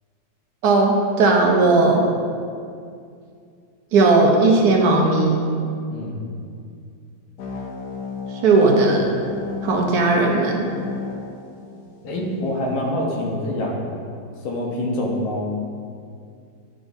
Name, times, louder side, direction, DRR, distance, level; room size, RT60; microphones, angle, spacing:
voice 1, 0.6-2.0 3.9-5.4 8.4-9.1 9.6-10.6, right 3 dB, 65° right, 0 dB, 1.1 m, -16 dB
voice 2, 5.9-6.3 12.0-13.8 14.4-15.5, left 1 dB, 90° left, -2 dB, 1.7 m, -25 dB
sound 1, 7.4-12.4, left 4 dB, 65° left, 1.1 m, -33 dB
9.8 x 3.8 x 2.6 m, 2.4 s
omnidirectional pair, 2.1 m